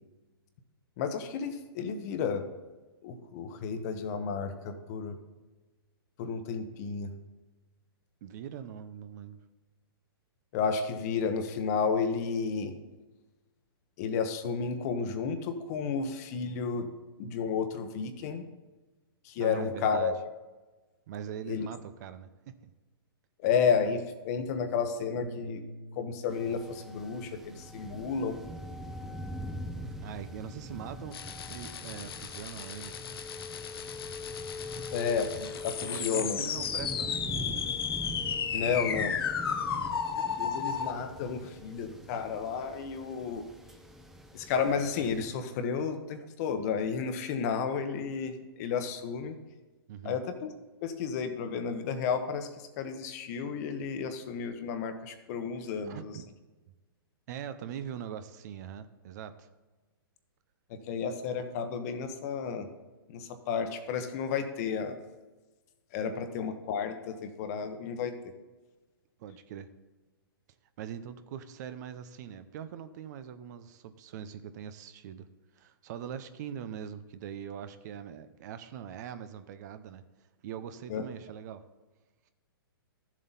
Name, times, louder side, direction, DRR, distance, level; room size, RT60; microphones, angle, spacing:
voice 1, 1.0-2.5 3.0-5.2 6.2-7.1 10.5-12.7 14.0-16.9 17.2-18.5 19.2-20.2 21.4-21.7 23.4-25.6 26.0-28.4 34.9-36.4 38.5-39.1 40.1-43.4 44.3-49.4 50.0-50.5 50.8-56.1 60.9-62.7 63.1-65.0 65.9-68.1 80.9-81.1, left 6 dB, 40° left, 7 dB, 1.1 m, -32 dB
voice 2, 8.2-9.4 19.4-20.2 21.1-22.5 30.0-33.0 34.8-35.0 35.8-37.2 39.7-40.0 49.9-50.2 55.8-56.3 57.3-59.5 69.2-69.7 70.8-75.3 75.6-80.0 80.4-81.6, right 9 dB, 45° right, 11 dB, 0.7 m, -42 dB
Bass guitar, 25.2-31.4, right 1 dB, 80° right, 1.0 m, -49 dB
sound 1, 26.3-45.3, left 1 dB, 5° right, 0.8 m, -43 dB
sound 2, 31.1-40.9, left 7 dB, 75° left, 0.9 m, -34 dB
13.0 x 7.4 x 4.1 m, 1.2 s
hypercardioid pair, 140°, 13 cm